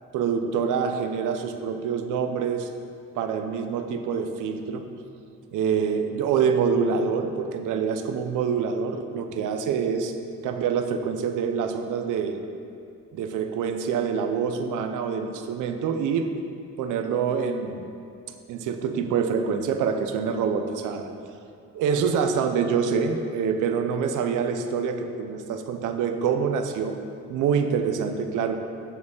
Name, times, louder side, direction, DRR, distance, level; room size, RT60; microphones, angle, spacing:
voice 1, 0.1-2.7 3.1-4.8 5.5-10.1 10.4-12.4 13.1-16.3 16.8-17.8 18.5-21.1 21.7-27.0 27.3-28.6, right 6 dB, 85° right, 6 dB, 0.8 m, -26 dB
9.0 x 4.3 x 7.1 m, 2.5 s
cardioid pair, 90°, 30 cm